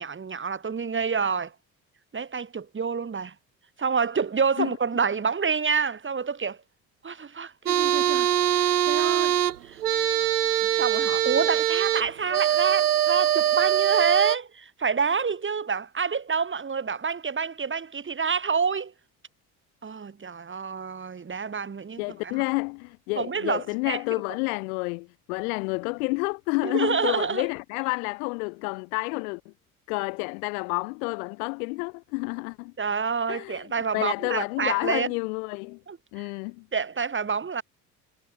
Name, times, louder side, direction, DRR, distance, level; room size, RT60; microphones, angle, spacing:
voice 1, 0.0-1.5 2.1-3.3 3.8-6.6 7.0-9.4 9.6-9.8 10.7-18.9 19.8-22.4 23.2-24.0 26.6-27.5 32.8-35.1 35.9-36.0 36.7-37.6, right 5 dB, 25° right, 2.3 m, -28 dB
sound 1, 7.7-14.4, right 11 dB, 90° right, 0.8 m, -23 dB
voice 2, 22.0-29.5 29.9-32.7 33.3-33.7 33.9-35.8 36.1-36.6, left 31 dB, 70° left, 1.5 m, -29 dB
figure-of-eight pair, 55°, 44 cm